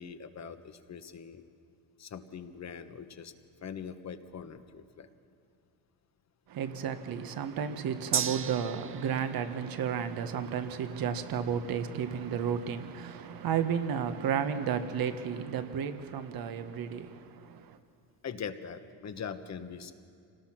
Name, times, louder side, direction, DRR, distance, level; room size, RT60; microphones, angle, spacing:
voice 1, 0.0-1.4 2.0-3.3 3.6-5.1 18.2-19.9, left 7 dB, 40° left, 1.4 m, -42 dB
voice 2, 6.5-17.8, right 7 dB, 60° right, 1.6 m, -33 dB
Gong, 8.1-15.9 16.2-16.3, right 7 dB, 30° right, 0.8 m, -41 dB
26.0 x 19.0 x 6.0 m
supercardioid pair, 85°, 40 cm